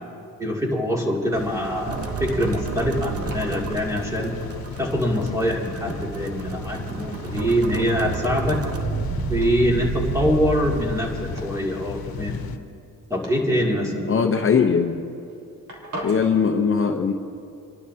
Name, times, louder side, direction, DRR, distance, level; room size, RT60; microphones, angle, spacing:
voice 1, 0.4-4.4 4.8-8.6 9.3-12.4 13.1-14.1, equal, 10° right, -2 dB, 2.6 m, -24 dB
sound 1, 1.3-12.6, left 5 dB, 80° left, 1.1 m, -35 dB
sound 2, 1.9-10.8, right 5 dB, 40° right, 0.8 m, -31 dB
Domestic sounds home sounds, 3.2-16.4, right 1 dB, 55° right, 4.0 m, -45 dB
voice 2, 14.1-15.0 16.0-17.1, left 6 dB, 35° left, 3 dB, 0.8 m, -20 dB
29.5 x 11.5 x 2.8 m, 2.6 s
cardioid pair, 100°, 36 cm